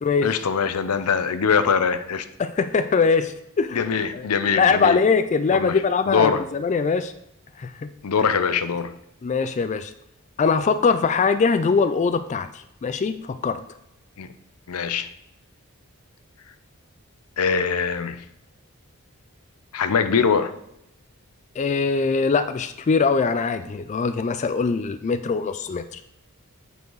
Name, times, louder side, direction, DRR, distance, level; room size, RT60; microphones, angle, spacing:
voice 1, 0.2-2.3 3.7-5.0 5.5-6.4 8.0-8.9 14.2-14.3 14.7-15.1 17.4-18.2 19.7-20.5, left 6 dB, 85° left, 11 dB, 0.6 m, -22 dB
voice 2, 2.4-3.8 4.1-4.3 4.6-7.1 7.6-7.9 9.2-9.9 10.4-13.6 21.6-26.0, left 5 dB, 30° left, 10 dB, 0.3 m, -22 dB
8.0 x 4.7 x 4.6 m, 0.80 s
head